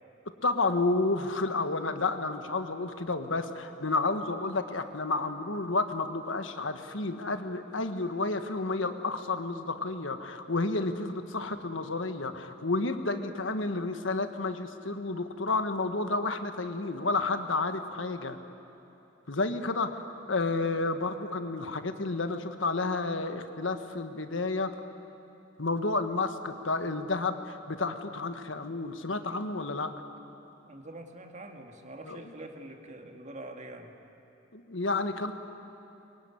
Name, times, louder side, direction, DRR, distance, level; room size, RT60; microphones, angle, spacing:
voice 1, 0.4-18.4 19.3-20.0 20.3-24.8 25.6-29.9 32.0-32.3 34.5-35.3, left 3 dB, 75° left, 8 dB, 1.6 m, -31 dB
voice 2, 30.6-34.0, right 1 dB, 40° right, 4 dB, 2.1 m, -45 dB
23.5 x 22.5 x 10.0 m, 3.0 s
head